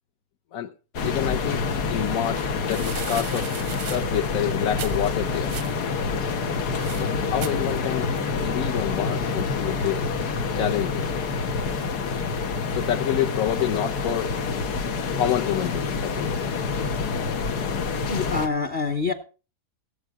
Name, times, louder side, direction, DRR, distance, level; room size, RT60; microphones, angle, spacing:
sound 1, 0.9-18.5, left 4 dB, 85° left, 1.7 m, -27 dB
voice 1, 1.0-1.6 1.9-5.6 6.9-8.1 8.4-11.1 12.7-14.3 15.2-16.3, left 11 dB, 65° left, 1.1 m, -28 dB
sound 2, 1.3-8.2, right 10 dB, 90° right, 1.3 m, -41 dB
voice 2, 18.1-19.1, left 4 dB, 35° left, 1.0 m, -26 dB
17.0 x 7.7 x 4.7 m
omnidirectional pair, 1.7 m